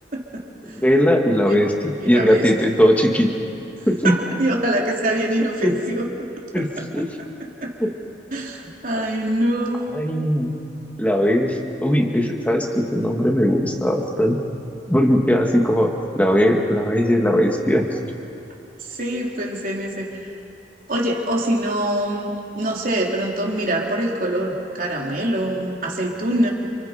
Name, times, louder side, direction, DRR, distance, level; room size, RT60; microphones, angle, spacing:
voice 1, 0.1-0.8 1.4-1.7 2.0-2.5 4.0-6.2 7.6-7.7 8.3-9.9 18.8-20.3 20.9-26.5, right 1 dB, 50° right, -1 dB, 3.5 m, -24 dB
voice 2, 0.7-3.3 3.9-4.1 5.6-5.7 6.5-6.7 6.9-7.1 7.8-7.9 9.9-10.5 11.0-14.4 14.9-17.8, equal, 10° left, 1 dB, 2.1 m, -19 dB
29.5 x 28.0 x 5.2 m, 2.7 s
head